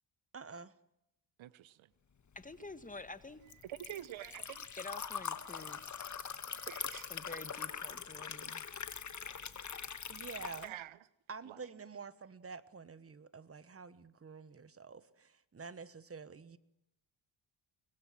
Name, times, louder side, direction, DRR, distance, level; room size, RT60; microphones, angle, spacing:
voice 1, 0.3-0.7 10.1-10.7 11.3-16.6, right 5 dB, 30° right, 1.3 m, -48 dB
voice 2, 1.4-1.9 3.6-4.8 5.5-5.8 6.6-7.1 9.0-9.1 10.6-11.0 11.4-11.6, right 13 dB, 70° right, 1.0 m, -47 dB
voice 3, 2.3-3.4 4.8-5.9 7.1-8.6, left 3 dB, 15° left, 1.4 m, -48 dB
Liquid, 2.4-10.7, left 6 dB, 35° left, 1.5 m, -43 dB
23.5 x 20.5 x 7.6 m
cardioid pair, 95°, 48 cm